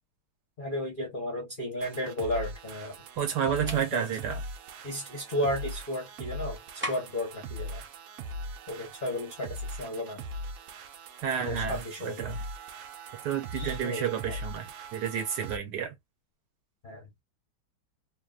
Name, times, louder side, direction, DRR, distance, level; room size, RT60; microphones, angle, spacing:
voice 1, 0.6-3.0 3.5-4.1 4.8-6.6 6.9-7.8 8.7-10.2 11.4-12.3 13.5-14.4 16.8-17.1, left 1 dB, 50° left, 0.6 m, -34 dB
sound 1, 1.8-15.6, right 1 dB, 80° right, 0.7 m, -40 dB
voice 2, 3.2-4.4 11.2-12.4 13.2-15.9, right 8 dB, 65° right, 1.3 m, -31 dB
sound 2, 3.7-3.9 6.8-7.3, equal, 15° right, 0.3 m, -36 dB
3.2 x 2.1 x 2.3 m
omnidirectional pair, 2.2 m